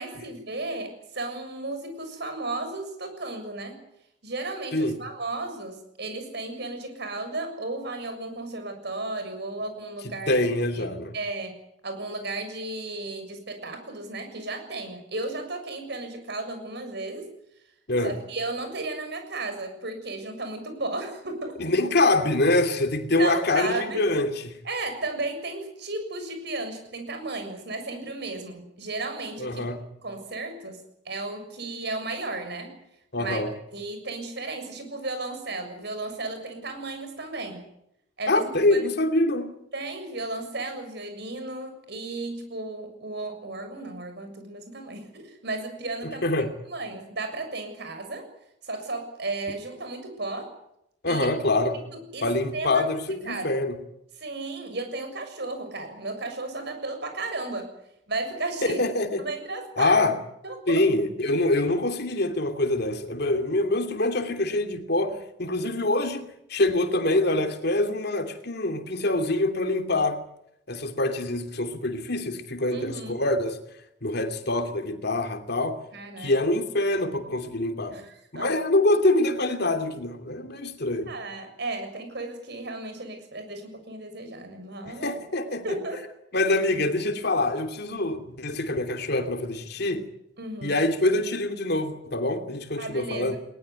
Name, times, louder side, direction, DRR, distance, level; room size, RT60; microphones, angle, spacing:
voice 1, 0.0-3.8 4.2-10.4 10.7-10.9 11.1-17.3 18.0-21.6 23.1-24.1 24.6-29.6 30.0-30.8 31.1-32.7 33.2-33.4 33.7-37.7 38.2-38.8 39.7-46.3 46.7-48.3 48.6-50.5 51.1-51.3 51.9-52.3 52.5-52.9 53.2-53.5 54.2-57.7 58.1-58.8 59.2-60.1 60.4-60.8 72.7-73.1 75.9-76.3 77.9-78.5 81.1-85.2 85.6-86.0 90.4-90.8 92.8-93.4, right 2 dB, 65° right, 7.0 m, -34 dB
voice 2, 10.0-11.1 17.9-18.2 21.6-24.6 29.4-29.8 33.1-33.5 38.3-39.6 46.0-46.5 51.0-51.8 52.2-53.8 58.6-59.3 59.8-60.2 60.7-70.2 70.7-73.6 74.0-75.8 76.2-78.0 78.3-81.1 84.9-85.8 86.3-90.1 90.6-93.4, left 2 dB, 60° left, 2.8 m, -25 dB
21.0 x 20.0 x 10.0 m
head